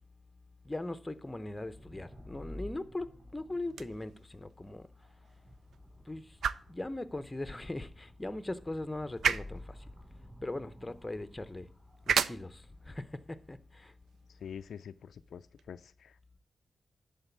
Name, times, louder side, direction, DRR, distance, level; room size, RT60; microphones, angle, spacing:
voice 1, 0.6-4.9 6.0-6.4 6.7-9.9 10.4-11.7 12.1-13.9, left 2 dB, 15° left, 0.7 m, -40 dB
sound 1, 1.4-13.9, left 1 dB, 10° right, 4.0 m, -52 dB
sound 2, 3.6-15.7, right 7 dB, 80° right, 0.4 m, -39 dB
voice 2, 14.4-16.1, left 7 dB, 80° left, 0.3 m, -46 dB
10.5 x 4.0 x 7.2 m
cardioid pair, 80°, 0 cm